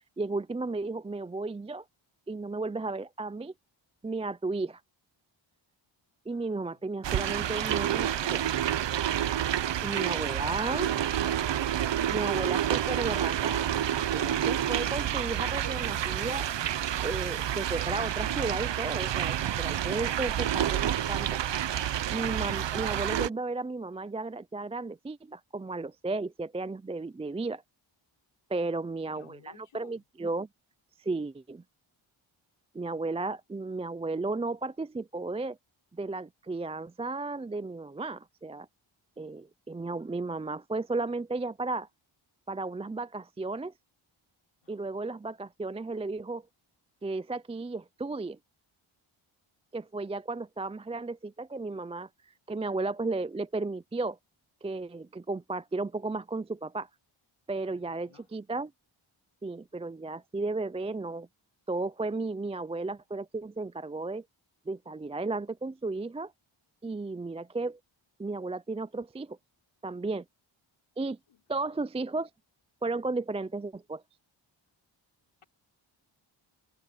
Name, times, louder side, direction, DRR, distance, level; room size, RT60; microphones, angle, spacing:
voice 1, 0.0-1.8 2.3-3.5 4.0-4.8 6.3-8.5 9.8-10.9 12.1-13.7 14.1-16.5 17.0-21.4 22.1-27.6 28.5-30.5 31.0-31.6 32.7-35.6 35.9-38.7 39.2-41.9 42.5-43.7 44.7-46.4 47.0-48.4 49.7-52.1 52.5-54.2 54.6-56.9 57.5-58.7 59.4-61.3 61.7-64.2 64.7-66.3 66.8-67.8 68.2-69.4 69.8-70.2 71.0-71.2 71.5-72.3 72.8-74.0, right 3 dB, 15° right, 0.3 m, -34 dB
voice 2, 6.3-6.9 9.5-11.5 29.1-30.0 44.6-45.1 57.6-58.3 71.3-71.8, left 6 dB, 85° left, 5.5 m, -57 dB
sound 1, 7.0-23.3, right 10 dB, 60° right, 0.7 m, -29 dB
cardioid pair, 75°, 50 cm